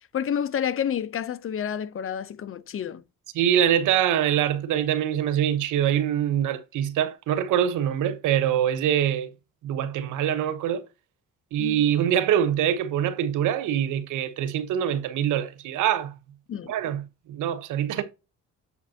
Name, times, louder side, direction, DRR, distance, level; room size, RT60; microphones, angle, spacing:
voice 1, 0.1-3.0 11.6-11.8 16.5-16.7, left 8 dB, 45° left, 0.6 m, -29 dB
voice 2, 3.3-9.3 9.6-10.9 11.5-16.1 16.7-17.0 17.3-18.0, right 10 dB, 85° right, 1.0 m, -24 dB
8.0 x 5.0 x 2.8 m
cardioid pair, 90°, 30 cm